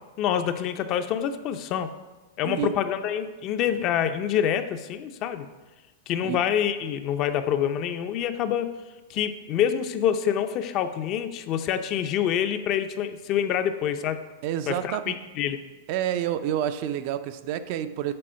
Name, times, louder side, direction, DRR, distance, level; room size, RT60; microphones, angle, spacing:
voice 1, 0.2-1.9 2.4-5.5 6.1-8.7 9.1-14.2 14.7-15.6, left 9 dB, 35° left, 9 dB, 0.5 m, -26 dB
voice 2, 14.4-15.2 15.9-18.1, right 11 dB, 50° right, 11 dB, 0.4 m, -28 dB
7.6 x 4.2 x 5.6 m, 1.2 s
supercardioid pair, 145°, 0 cm